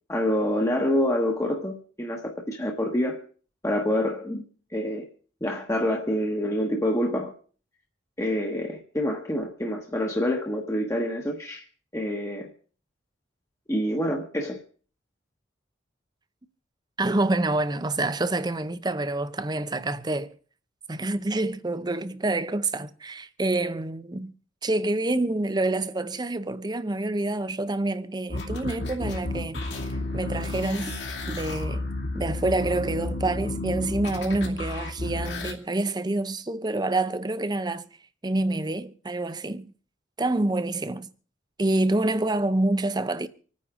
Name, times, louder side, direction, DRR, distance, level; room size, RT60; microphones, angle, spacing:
voice 1, 0.1-3.2 3.6-4.4 4.7-5.1 5.4-7.3 8.2-11.6 11.9-12.5 13.7-14.6, left 1 dB, 15° left, 1.3 m, -27 dB
voice 2, 17.0-20.3 20.9-24.3 24.6-29.7 30.1-31.0 31.3-31.9 32.1-37.9 38.2-39.7 40.2-41.1 41.6-43.3, right 2 dB, 20° right, 0.6 m, -27 dB
sound 1, 28.3-35.5, left 2 dB, 65° left, 2.5 m, -32 dB
26.0 x 9.6 x 3.7 m
head